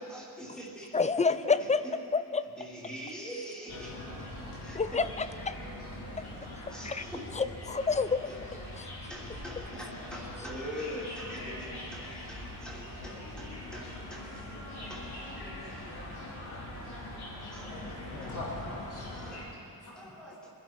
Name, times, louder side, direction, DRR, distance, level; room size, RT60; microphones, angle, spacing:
voice 1, 0.0-1.0 1.3-1.4 1.8-1.9 2.6-3.9 4.2-5.0 6.7-7.4 8.3-8.4 9.1-14.4 14.9-15.5 17.5-17.7 18.2-18.3 19.1-19.4 19.9-20.5, equal, ahead, -5 dB, 3.0 m, -43 dB
voice 2, 0.9-2.4 4.7-5.6 6.8-7.1 7.3-8.2 8.8-8.9, left 4 dB, 20° left, 13 dB, 0.4 m, -28 dB
sound 1, 3.7-19.4, left 1 dB, 75° left, 3.7 m, -42 dB
voice 3, 17.6-19.4 19.8-20.1, left 2 dB, 50° left, -6 dB, 3.5 m, -43 dB
24.0 x 11.0 x 4.6 m, 2.6 s
wide cardioid pair, 165°, 39 cm